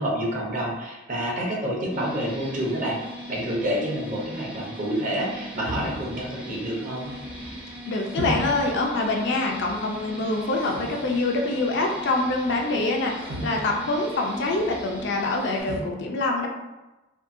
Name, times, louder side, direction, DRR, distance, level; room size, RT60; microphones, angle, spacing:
voice 1, 0.0-3.0 3.3-7.1, equal, 40° right, -3 dB, 0.7 m, -28 dB
sound 1, 1.9-15.6, equal, 5° right, 0.4 m, -39 dB
sound 2, 5.6-15.8, equal, 90° right, 1.0 m, -38 dB
voice 2, 7.9-16.5, left 2 dB, 60° left, 1 dB, 0.4 m, -25 dB
2.7 x 2.6 x 2.5 m, 1.1 s
head